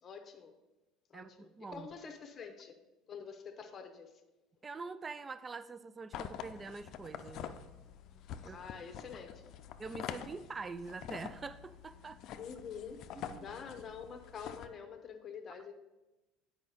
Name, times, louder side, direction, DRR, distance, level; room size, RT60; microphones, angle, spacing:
voice 1, 0.0-0.5 1.1-2.8 3.1-4.1 8.4-9.5 12.4-13.0 13.4-15.7, left 6 dB, 35° left, 1.0 m, -47 dB
voice 2, 1.1-1.9 4.6-7.7 8.4-8.6 9.8-12.2 13.2-13.5, right 4 dB, 20° right, 0.3 m, -45 dB
sound 1, 6.1-14.7, left 9 dB, 55° left, 0.5 m, -46 dB
8.4 x 5.0 x 4.9 m
supercardioid pair, 120°, 0 cm